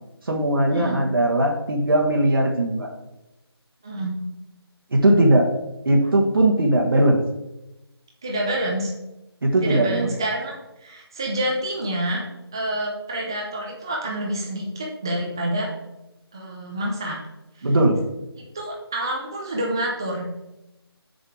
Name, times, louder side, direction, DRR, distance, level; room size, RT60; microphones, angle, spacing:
voice 1, 0.3-2.9 4.9-5.5 5.8-7.2 9.4-10.1 17.6-18.0, right 1 dB, 55° right, 1 dB, 1.4 m, -19 dB
voice 2, 3.8-4.1 8.2-8.9 9.6-10.5 10.8-12.2 12.5-15.7 16.3-17.2 17.6-17.7 18.5-20.3, right 1 dB, 10° right, -2 dB, 0.5 m, -27 dB
6.8 x 6.7 x 4.7 m, 0.95 s
figure-of-eight pair, 175°, 14 cm